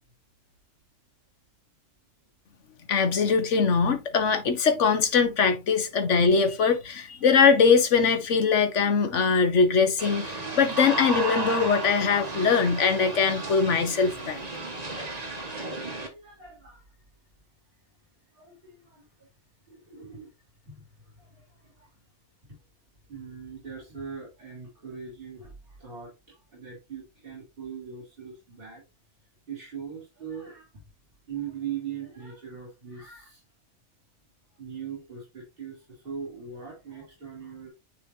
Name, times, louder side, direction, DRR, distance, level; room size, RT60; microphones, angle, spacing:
voice 1, 2.9-10.3 10.5-14.4, left 5 dB, 75° left, 1.5 m, -22 dB
sound 1, 10.0-16.1, right 2 dB, 35° right, 1.6 m, -33 dB
voice 2, 15.3-16.9 18.3-19.3 19.7-20.3 20.6-22.0 22.5-22.6 23.1-28.8 29.5-30.8 31.3-33.4 34.6-37.7, right 7 dB, 50° right, 3.5 m, -41 dB
9.8 x 3.8 x 2.8 m
omnidirectional pair, 1.3 m